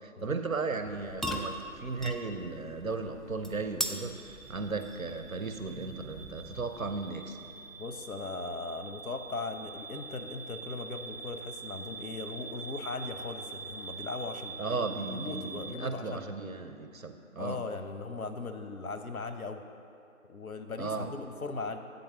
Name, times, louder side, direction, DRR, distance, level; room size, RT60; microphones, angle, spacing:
voice 1, 0.0-7.4 14.6-17.6 20.8-21.1, right 4 dB, 70° right, 7 dB, 0.8 m, -35 dB
sound 1, 0.8-7.2, equal, ahead, 0.3 m, -41 dB
sound 2, 4.1-15.7, right 4 dB, 45° right, 1.3 m, -45 dB
voice 2, 7.8-16.2 17.4-19.6 20.3-21.8, left 3 dB, 85° left, 7 dB, 0.8 m, -39 dB
8.6 x 4.0 x 6.9 m, 2.6 s
figure-of-eight pair, 175°, 42 cm